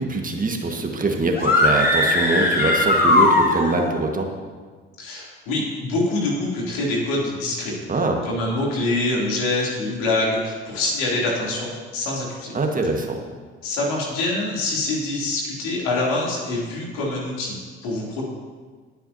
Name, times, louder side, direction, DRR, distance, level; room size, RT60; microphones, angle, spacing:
voice 1, 0.0-4.3 7.9-8.2 12.5-13.2, right 2 dB, 25° right, 2 dB, 1.7 m, -23 dB
sound 1, 1.3-3.9, left 2 dB, 30° left, 3.7 m, -18 dB
voice 2, 5.0-7.7 8.2-12.5 13.6-17.5 17.8-18.2, left 2 dB, 70° left, -4 dB, 3.3 m, -25 dB
19.5 x 9.0 x 2.9 m, 1.5 s
hypercardioid pair, 55°, 30 cm